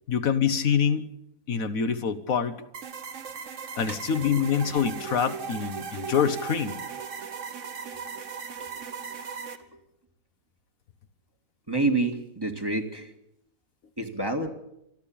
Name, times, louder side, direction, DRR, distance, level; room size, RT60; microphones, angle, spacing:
voice 1, 0.1-1.1 1.5-2.6 3.8-6.8, left 7 dB, 75° left, 10 dB, 1.5 m, -25 dB
sound 1, 2.7-9.6, right 6 dB, 60° right, 1.6 m, -37 dB
voice 2, 11.7-13.1 14.0-14.5, right 2 dB, 15° right, 4 dB, 1.9 m, -28 dB
27.0 x 12.0 x 8.7 m, 0.82 s
omnidirectional pair, 1.5 m